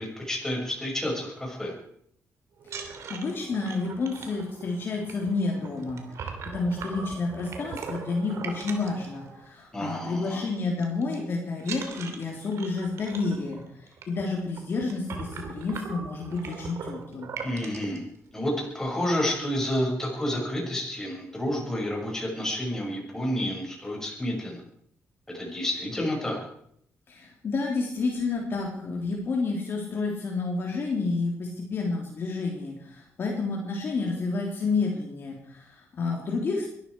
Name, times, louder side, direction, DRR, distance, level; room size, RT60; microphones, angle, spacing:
voice 1, 0.0-1.7 9.7-10.4 17.4-18.0 18.3-24.6 25.3-26.4, left 1 dB, 10° left, -1 dB, 6.4 m, -30 dB
sound 1, 2.6-9.7 10.0-10.3 10.6-11.1 11.6-18.0 18.6-18.7 19.1-19.2 19.5-20.1, right 5 dB, 65° right, 2.9 m, -40 dB
voice 2, 3.1-17.3 27.1-36.7, left 3 dB, 45° left, 0 dB, 3.6 m, -30 dB
22.5 x 13.5 x 4.8 m, 0.68 s
cardioid pair, 130°, 5 cm